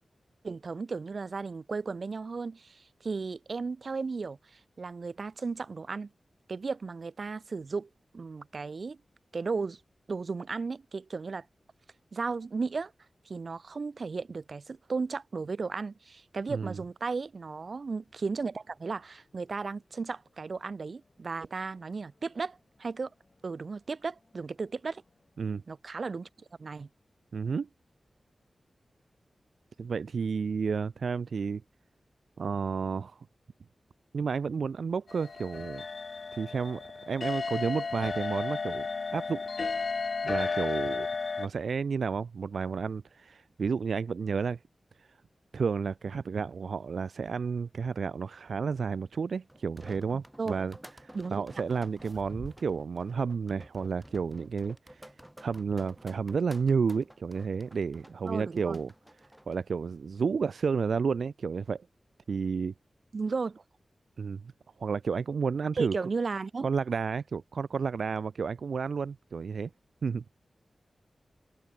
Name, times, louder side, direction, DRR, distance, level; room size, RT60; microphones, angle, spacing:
voice 1, 0.4-6.1 6.5-9.0 9.3-9.8 10.1-11.4 12.1-12.9 13.3-23.1 23.4-25.0 25.7-26.3 26.6-26.9 50.1-50.8 51.1-51.4 58.2-58.8 63.1-63.6 65.8-66.7, right 4 dB, 55° right, 0.9 m, -35 dB
voice 2, 16.5-16.8 25.4-25.6 27.3-27.7 29.8-31.6 32.4-33.3 34.1-35.8 36.3-38.9 39.1-39.4 40.2-41.1 41.4-44.6 45.0-45.1 45.5-50.8 51.0-55.1 55.4-58.9 59.5-61.9 62.3-62.7 64.2-64.5 64.8-66.0 66.6-69.7 70.0-70.2, right 5 dB, 80° right, 0.5 m, -31 dB
sound 1, 17.6-25.6, left 3 dB, 40° left, 6.6 m, -70 dB
sound 2, 35.1-41.5, left 4 dB, 60° left, 0.5 m, -33 dB
sound 3, 49.5-59.6, right 1 dB, 5° right, 6.0 m, -50 dB
wide cardioid pair, 100°, 0 cm